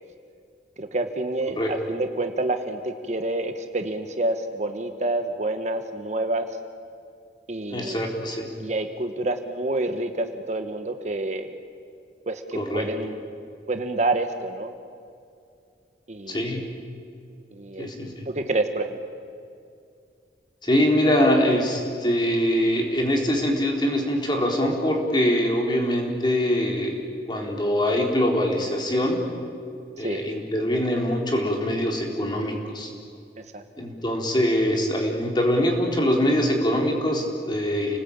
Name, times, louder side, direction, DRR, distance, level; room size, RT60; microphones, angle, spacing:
voice 1, 0.8-6.5 7.5-8.0 8.6-11.5 12.3-13.2 13.7-14.7 16.1-16.6 17.5-17.9 18.3-19.0 30.0-30.2 33.5-33.6, right 2 dB, 40° right, 7 dB, 1.3 m, -28 dB
voice 2, 7.7-8.5 12.5-12.9 16.3-16.6 17.8-18.1 20.6-27.0 27.3-29.2 30.0-32.9 33.8-38.0, equal, 25° left, 1 dB, 3.9 m, -23 dB
29.5 x 19.5 x 8.8 m, 2.4 s
head